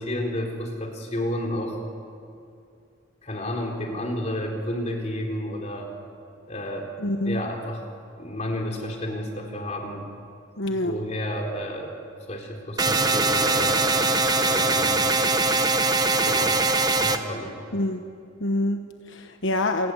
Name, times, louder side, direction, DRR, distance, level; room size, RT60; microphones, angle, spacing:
voice 1, 0.0-1.8 3.2-5.9 6.5-6.9 7.2-7.8 8.2-10.1 10.7-11.9 12.3-13.9 14.4-15.1 16.3-16.6 16.9-17.6, left 1 dB, 35° left, 1 dB, 4.0 m, -31 dB
voice 2, 7.0-7.4 10.6-10.9 17.7-18.0 18.4-19.9, left 1 dB, 75° left, 6 dB, 1.1 m, -26 dB
sound 1, 12.8-17.2, right 3 dB, 20° right, 1.1 m, -22 dB
27.0 x 20.0 x 8.0 m, 2.5 s
head